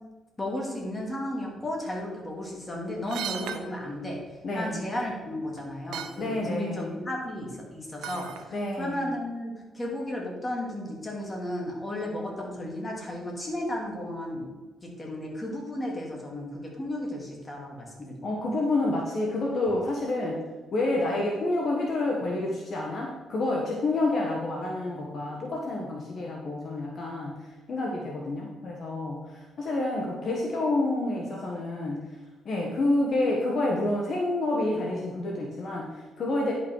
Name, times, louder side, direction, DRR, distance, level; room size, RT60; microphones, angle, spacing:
voice 1, 0.4-4.2 4.5-14.5 14.8-18.3, left 1 dB, 25° left, -1 dB, 2.7 m, -34 dB
sound 1, 3.1-3.6 5.0-5.1 5.6-5.7 5.9-6.2 8.0-8.4 8.9-9.0, right 9 dB, 85° right, 0.7 m, -36 dB
voice 2, 4.4-4.8 6.2-6.9 8.5-9.1 18.2-20.4 20.7-32.0 32.4-36.5, left 2 dB, 55° left, -1 dB, 1.5 m, -28 dB
10.5 x 5.9 x 4.7 m, 1.2 s
cardioid pair, 90°, 0 cm